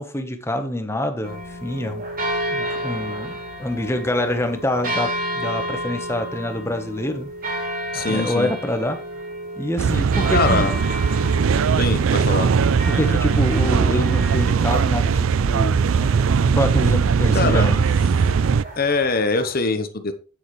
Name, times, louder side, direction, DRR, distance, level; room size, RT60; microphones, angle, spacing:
voice 1, 0.0-2.0 2.5-7.3 7.9-9.0 9.6-10.7 12.9-15.8 16.5-17.8, left 1 dB, 10° left, 7 dB, 1.1 m, -26 dB
sound 1, 1.2-19.5, equal, 40° right, 4.3 m, -32 dB
voice 2, 7.9-8.5 10.3-10.7 11.8-12.5 17.3-17.8 18.8-20.1, left 3 dB, 45° left, 9 dB, 1.0 m, -22 dB
sound 2, 9.8-18.6, right 6 dB, 65° right, 0.4 m, -19 dB
9.0 x 8.0 x 3.2 m, 0.35 s
head